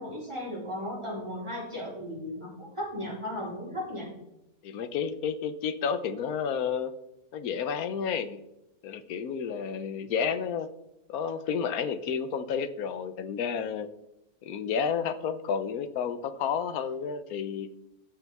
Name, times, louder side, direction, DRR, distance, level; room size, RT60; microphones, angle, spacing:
voice 1, 0.0-4.1, left 1 dB, 20° right, -4 dB, 3.9 m, -36 dB
voice 2, 4.6-6.9 7.3-8.4 8.8-10.7 11.1-13.9 14.4-17.7, left 7 dB, 80° left, 12 dB, 1.2 m, -31 dB
14.5 x 6.8 x 3.5 m, 0.89 s
omnidirectional pair, 1.5 m